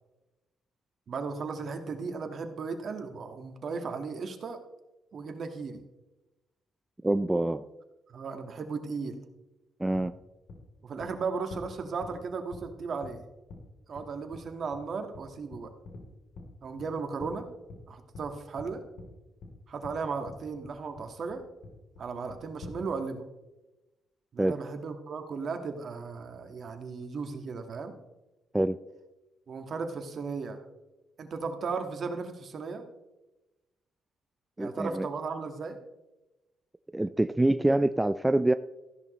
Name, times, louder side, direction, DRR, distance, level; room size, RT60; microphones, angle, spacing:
voice 1, 1.1-4.6 5.1-5.8 8.1-9.2 10.8-13.2 13.9-15.7 16.6-17.5 17.9-18.8 19.7-21.4 22.0-23.2 24.3-27.9 29.5-30.6 31.2-32.8 34.6-35.8, right 4 dB, 55° right, 6 dB, 1.6 m, -36 dB
voice 2, 7.0-7.6 9.8-10.1 24.4-24.6 28.5-28.8 34.6-35.1 36.9-38.5, right 1 dB, 10° right, 11 dB, 0.4 m, -25 dB
sound 1, 9.9-10.0 10.5-10.6 11.0-11.1 11.5-11.6 12.0-12.1 12.5-12.6 13.0-13.2 13.5-13.6 14.0-14.1 14.3-14.4 14.7-14.8 15.1-15.2 15.5-16.0 16.4-16.5 16.8-16.9 17.2-17.3 17.7-17.8 18.1-18.3 18.6-18.7 19.0-19.1 19.4-19.5 19.8-19.9 20.3-20.4 20.6-21.1 21.3-21.4 21.6-22.0 22.3-22.8, left 3 dB, 70° left, 3.1 m, -45 dB
14.5 x 11.0 x 3.1 m, 1.0 s
cardioid pair, 90°, 0 cm